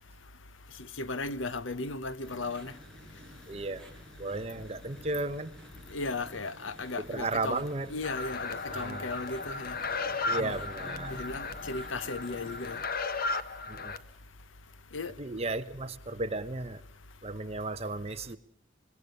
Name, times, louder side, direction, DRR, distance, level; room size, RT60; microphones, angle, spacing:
voice 1, 1.0-2.7 5.9-7.6 7.9-9.8 10.4-10.6 11.1-12.8 14.9-15.1, left 3 dB, 85° left, 1.0 m, -36 dB
sound 1, 2.2-12.9, equal, 5° left, 5.2 m, -52 dB
voice 2, 3.5-3.8 4.2-5.5 7.1-7.9 8.7-9.2 10.3-11.2 13.7-14.0 15.2-16.8 17.2-18.4, right 2 dB, 35° right, 1.1 m, -34 dB
sound 2, 8.0-14.0, left 3 dB, 50° left, 1.3 m, -35 dB
25.0 x 21.0 x 6.8 m
head